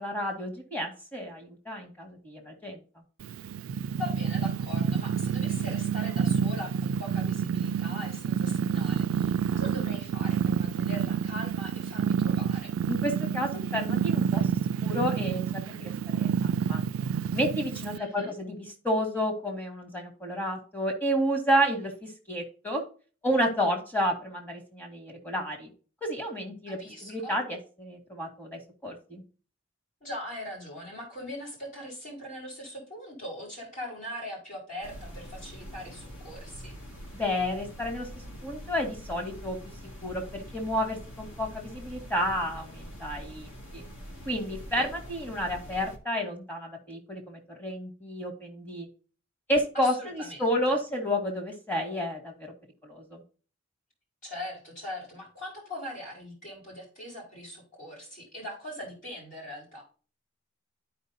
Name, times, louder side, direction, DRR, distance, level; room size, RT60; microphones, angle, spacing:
voice 1, 0.0-2.8 12.9-14.5 14.8-16.8 17.3-18.6 18.8-22.8 23.2-25.7 26.0-29.2 37.1-38.1 38.4-39.6 40.0-43.8 44.3-48.9 49.5-52.5 52.8-53.2, equal, 10° left, 2 dB, 2.1 m, -31 dB
Purr, 3.2-18.0, right 7 dB, 85° right, 0.3 m, -29 dB
voice 2, 4.0-12.7 17.9-18.3 26.7-27.4 30.0-36.7 44.7-44.8 49.7-50.8 54.2-59.8, left 1 dB, 40° left, -4 dB, 4.3 m, -41 dB
sound 1, 34.8-46.0, equal, 85° left, 2.2 m, -44 dB
13.0 x 5.2 x 2.7 m, 0.37 s
head